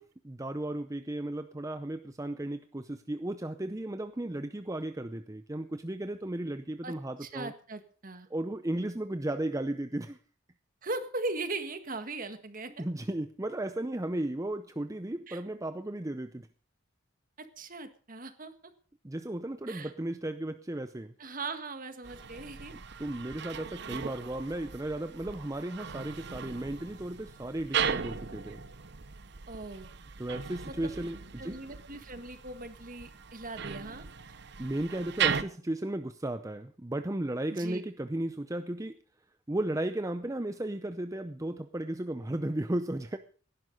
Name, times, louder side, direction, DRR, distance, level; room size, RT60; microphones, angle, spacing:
voice 1, 0.2-7.5 8.3-10.2 12.8-16.5 19.0-21.1 23.0-28.6 30.2-31.6 34.6-39.0 39.5-43.2, right 1 dB, 15° right, 9 dB, 0.6 m, -35 dB
voice 2, 7.2-8.3 10.8-12.9 15.3-15.4 17.4-18.5 19.7-19.9 21.2-22.8 29.5-29.9 30.6-30.9 31.4-34.1 37.5-37.8, right 2 dB, 45° right, 9 dB, 1.7 m, -39 dB
sound 1, 22.0-35.4, right 7 dB, 60° right, 0.9 m, -37 dB
17.5 x 11.0 x 5.3 m, 0.42 s
head